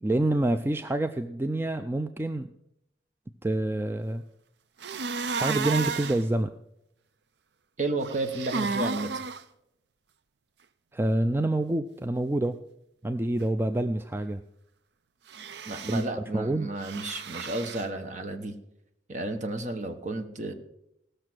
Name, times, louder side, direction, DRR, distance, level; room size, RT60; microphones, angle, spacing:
voice 1, 0.0-2.5 3.4-4.2 5.3-6.5 10.9-12.6 13.0-14.4 15.9-16.0 16.3-16.7, right 1 dB, 15° right, 8 dB, 0.3 m, -27 dB
sound 1, 4.8-6.2 8.0-9.4 15.3-16.1 16.8-17.8, right 4 dB, 70° right, 0.5 m, -32 dB
voice 2, 7.8-9.2 15.7-18.5 19.1-20.5, right 2 dB, 45° right, 6 dB, 1.2 m, -32 dB
17.0 x 6.6 x 6.2 m, 0.82 s
head